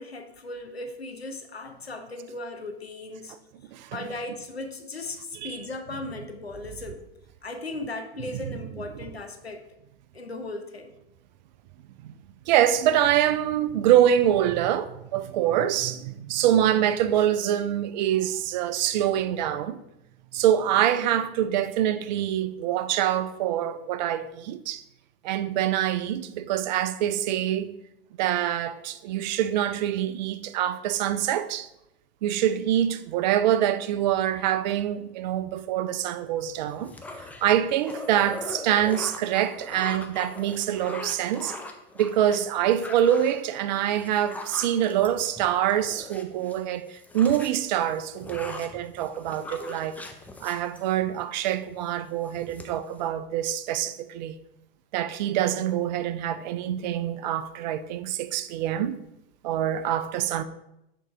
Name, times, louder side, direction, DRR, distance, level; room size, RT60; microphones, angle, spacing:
voice 1, 0.0-3.4 3.9-7.0 7.4-9.6 10.1-10.9, left 2 dB, 90° left, 0.8 m, -37 dB
voice 2, 12.5-19.8 20.3-24.8 25.2-27.7 28.2-31.7 32.2-36.9 37.4-41.5 42.0-50.0 50.4-54.3 54.9-59.1 59.4-60.4, right 11 dB, 45° right, 0.5 m, -25 dB
sound 1, 36.7-46.6 46.9-51.3 51.7-52.0 52.2-53.1, left 2 dB, 5° left, 0.5 m, -41 dB
6.4 x 3.7 x 4.6 m
figure-of-eight pair, 90°, 30 cm